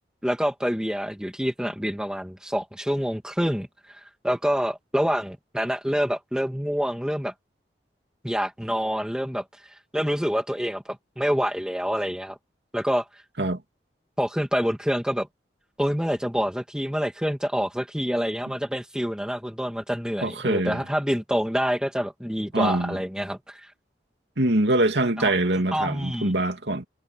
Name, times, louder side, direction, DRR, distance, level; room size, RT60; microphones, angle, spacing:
voice 1, 0.2-7.3 8.2-12.4 12.7-13.1 14.2-15.3 15.8-23.7 25.2-25.3 25.7-26.4, equal, 5° right, 2.3 m, -27 dB
voice 2, 20.2-20.8 22.5-23.0 24.4-26.8, right 1 dB, 80° right, 2.7 m, -24 dB
head